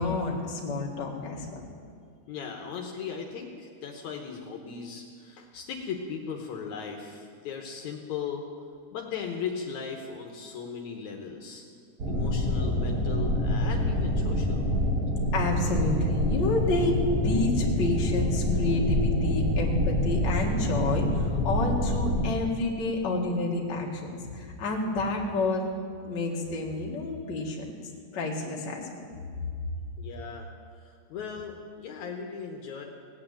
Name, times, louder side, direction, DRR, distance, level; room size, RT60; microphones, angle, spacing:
voice 1, 0.0-1.6 15.3-16.9 17.2-25.6 26.0-27.6 28.1-29.1, left 2 dB, 40° left, -1 dB, 2.2 m, -29 dB
voice 2, 2.3-8.4 8.9-11.6 12.1-14.8 19.6-19.8 30.0-30.5 30.8-32.9, left 6 dB, 70° left, 2 dB, 2.3 m, -37 dB
sound 1, 12.0-22.3, left 1 dB, 45° right, 1.3 m, -26 dB
17.5 x 8.7 x 8.8 m, 2.2 s
omnidirectional pair, 3.7 m